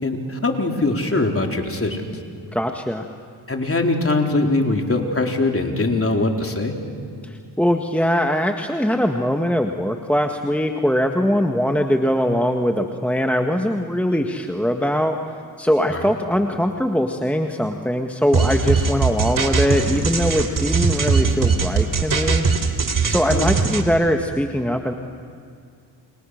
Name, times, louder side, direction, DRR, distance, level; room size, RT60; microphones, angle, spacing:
voice 1, 0.0-2.1 3.5-6.7 15.9-16.1 23.3-23.5, left 2 dB, 30° left, 3 dB, 4.1 m, -22 dB
voice 2, 2.5-3.1 7.2-15.2 15.6-22.5 23.1-24.9, equal, 5° left, 4 dB, 1.6 m, -21 dB
sound 1, 18.3-23.8, right 5 dB, 40° right, 3.2 m, -20 dB
29.0 x 28.5 x 6.6 m, 2.3 s
supercardioid pair, 60°, 48 cm